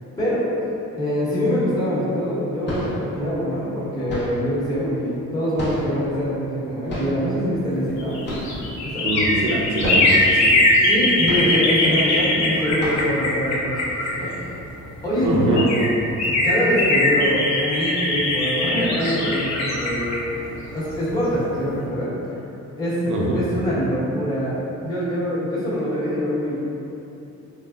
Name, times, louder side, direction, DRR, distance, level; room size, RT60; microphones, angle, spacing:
voice 1, 1.0-8.2 8.8-9.1 10.9-14.3 15.0-15.6 16.2-20.3 20.7-22.1 22.8-23.0 23.3-26.5, equal, 15° left, -11 dB, 1.0 m, -24 dB
sound 1, 2.6-3.1 4.1-4.5 5.5-6.1 6.9-7.3 8.2-8.7 8.9-9.0 9.4-9.5 9.8-10.2 11.2-11.8 12.2-12.3 12.8-13.2, left 1 dB, 35° left, 0.9 m, -31 dB
sound 2, 7.9-14.7 15.2-15.3 15.5-21.3 21.7-21.8, left 1 dB, 65° left, 0.7 m, -21 dB
voice 2, 9.0-10.5 15.2-15.7 23.1-23.4, right 1 dB, 90° right, -3 dB, 0.6 m, -23 dB
3.3 x 2.1 x 2.3 m, 2.9 s
cardioid pair, 90°, 30 cm